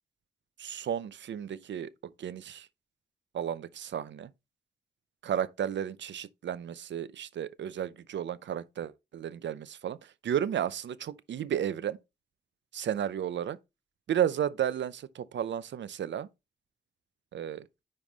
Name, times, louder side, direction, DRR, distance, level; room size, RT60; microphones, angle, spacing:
voice 1, 0.6-1.9 2.2-2.7 3.3-4.3 5.2-10.0 10.2-12.0 12.7-13.6 14.1-16.3 17.3-17.6, right 9 dB, 90° right, 0.5 m, -33 dB
9.6 x 3.7 x 3.9 m
wide cardioid pair, 170°, 18 cm